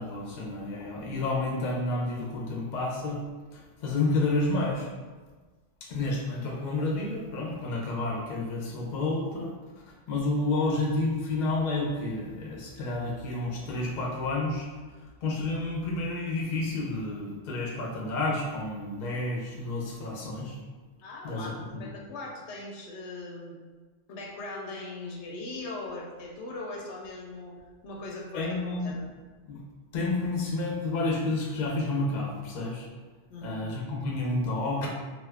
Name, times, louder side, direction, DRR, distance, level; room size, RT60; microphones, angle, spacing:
voice 1, 0.0-3.2 3.5-4.9 5.8-9.5 10.1-14.6 15.2-20.6 21.2-21.9 28.3-28.9 29.5-29.6 29.9-32.9 33.4-34.9, left 2 dB, 50° left, -3 dB, 0.7 m, -30 dB
voice 2, 21.0-23.6 24.1-27.5 27.8-29.1 33.3-33.7, left 2 dB, 85° left, -2 dB, 0.9 m, -40 dB
2.7 x 2.4 x 3.3 m, 1.4 s
omnidirectional pair, 1.2 m